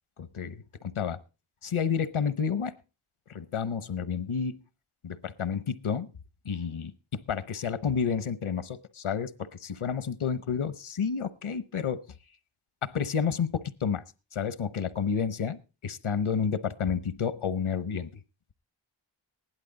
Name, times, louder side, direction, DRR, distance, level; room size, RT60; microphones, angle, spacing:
voice 1, 0.2-0.6 0.8-1.2 1.6-2.7 3.3-4.6 5.0-6.1 6.4-12.0 12.8-14.0 14.3-18.1, left 6 dB, 80° left, 15 dB, 1.0 m, -30 dB
16.0 x 11.0 x 4.0 m, 0.32 s
wide cardioid pair, 65°, 49 cm